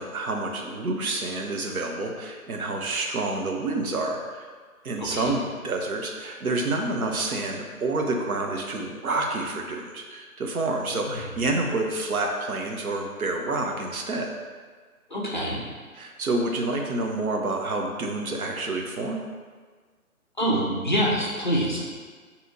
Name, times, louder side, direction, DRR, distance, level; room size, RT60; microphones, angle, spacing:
voice 1, 0.0-4.5 4.8-14.3 15.9-19.2, right 2 dB, 75° right, 2 dB, 0.7 m, -28 dB
voice 2, 5.0-5.3 10.9-11.3 15.1-15.6 20.4-21.8, equal, 35° left, -4 dB, 0.5 m, -26 dB
2.8 x 2.5 x 3.8 m, 1.5 s
figure-of-eight pair, 145°, 44 cm